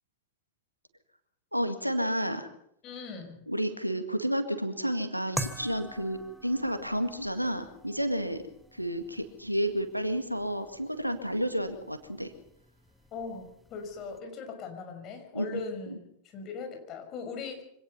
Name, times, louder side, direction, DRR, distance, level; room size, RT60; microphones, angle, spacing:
voice 1, 1.5-2.5 3.5-8.4 8.7-12.3 15.3-15.6, equal, 90° right, 8 dB, 2.0 m, -31 dB
voice 2, 2.8-3.4 13.1-16.0 16.3-17.6, left 5 dB, 35° left, 5 dB, 5.7 m, -39 dB
sound 1, 5.4-14.2, right 1 dB, ahead, 1.4 m, -44 dB
25.0 x 18.5 x 5.6 m, 0.72 s
figure-of-eight pair, 90°, 0 cm